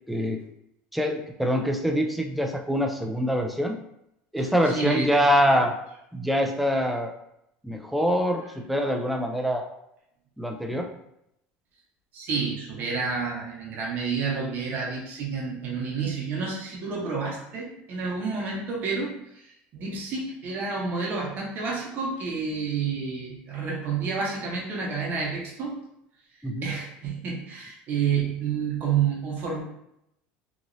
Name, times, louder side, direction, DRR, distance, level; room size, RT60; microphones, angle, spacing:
voice 1, 0.1-0.4 0.9-3.8 4.3-5.8 6.1-7.1 7.6-9.7 10.4-10.9 26.4-26.7, equal, ahead, 3 dB, 0.4 m, -24 dB
voice 2, 4.7-5.1 12.1-25.8 26.6-29.6, right 5 dB, 45° right, -2 dB, 1.0 m, -29 dB
3.0 x 2.6 x 2.6 m, 0.79 s
supercardioid pair, 130°, 5 cm